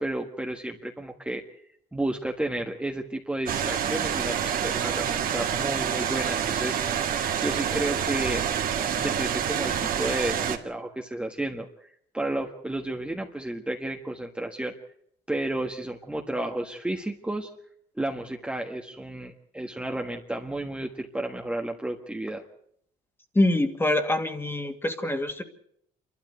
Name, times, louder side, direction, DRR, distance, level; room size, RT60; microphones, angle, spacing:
voice 1, 0.0-1.4 1.9-7.0 7.4-8.4 8.9-11.7 12.1-14.7 15.3-17.5 18.0-22.4, right 1 dB, 5° right, 2 dB, 1.5 m, -32 dB
sound 1, 3.5-10.6, right 8 dB, 55° right, 2.2 m, -27 dB
voice 2, 23.3-25.4, left 1 dB, 15° left, 8 dB, 2.2 m, -25 dB
27.5 x 12.5 x 8.1 m, 0.71 s
cardioid pair, 110°, 17 cm